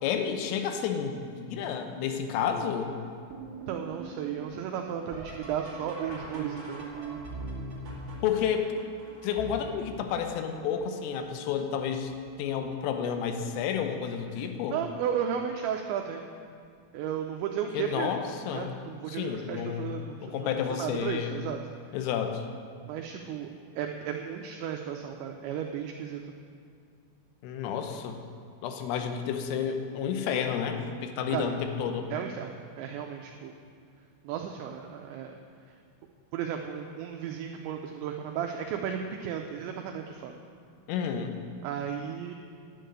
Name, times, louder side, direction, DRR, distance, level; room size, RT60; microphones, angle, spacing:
voice 1, 0.0-2.9 8.2-8.7 9.2-12.1 12.4-14.8 17.7-18.7 19.1-21.4 21.9-22.5 27.4-28.2 28.6-32.1 40.9-41.4, left 7 dB, 85° left, 6 dB, 3.5 m, -31 dB
sound 1, 3.3-11.0 11.6-12.2 12.6-13.3 14.5-14.6 15.3-15.7 17.8-17.9 20.3-20.4, right 2 dB, 70° right, 0.9 m, -42 dB
voice 2, 3.7-6.9 14.7-16.2 16.9-18.1 18.5-21.6 22.8-26.3 31.3-31.5 32.1-33.5 34.2-35.4 36.3-40.3 41.6-42.3, right 8 dB, 90° right, 3 dB, 2.5 m, -34 dB
10.5 x 6.6 x 9.0 m, 2.3 s
omnidirectional pair, 5.8 m